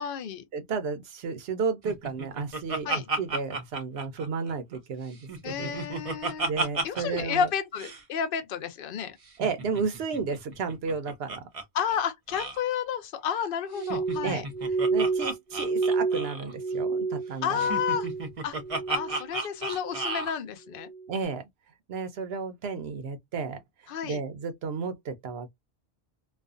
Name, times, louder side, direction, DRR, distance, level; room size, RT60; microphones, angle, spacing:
voice 1, 0.0-0.4 2.8-3.1 5.4-6.5 6.8-9.2 11.7-14.4 17.4-18.1 18.4-18.6 18.9-20.9 23.9-24.2, left 7 dB, 60° left, 0.8 m, -31 dB
voice 2, 0.5-5.2 5.4-5.8 6.4-7.5 9.4-11.4 14.2-14.5 14.9-17.6 21.1-21.4 21.9-23.6 24.0-25.5, right 5 dB, 70° right, 0.8 m, -32 dB
Laughter, 1.8-4.8 5.1-7.2 7.5-7.6 7.8-8.0 9.3-11.6 11.9-12.0 12.3-12.6 13.7-16.5 17.6-20.3, right 3 dB, 40° right, 0.7 m, -33 dB
Glass, 13.7-18.3 18.6-19.3 19.6-20.2 20.8-21.1, right 4 dB, 10° left, 0.5 m, -30 dB
2.4 x 2.3 x 2.3 m
omnidirectional pair, 1.1 m